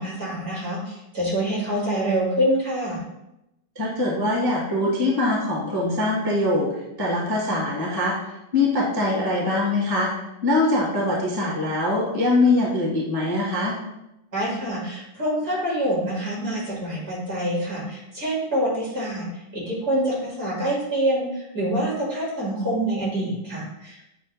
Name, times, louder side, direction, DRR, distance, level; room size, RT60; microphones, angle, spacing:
voice 1, 0.0-3.0 14.3-19.2 19.5-24.1, right 1 dB, 45° right, -5 dB, 2.3 m, -26 dB
voice 2, 3.7-8.2 8.5-10.1 10.4-13.8, left 2 dB, 15° right, -4 dB, 0.9 m, -23 dB
7.1 x 2.6 x 5.2 m, 0.88 s
omnidirectional pair, 2.2 m